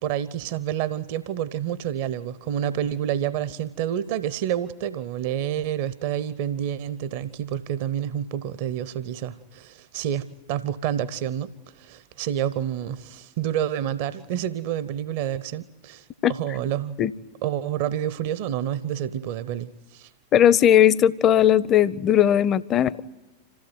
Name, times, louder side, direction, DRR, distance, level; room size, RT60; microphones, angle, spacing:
voice 1, 0.0-17.0 17.4-20.1, right 10 dB, 50° right, 0.8 m, -29 dB
voice 2, 20.3-23.0, left 10 dB, 30° left, 0.7 m, -18 dB
27.0 x 16.5 x 9.3 m
figure-of-eight pair, 90°, 0 cm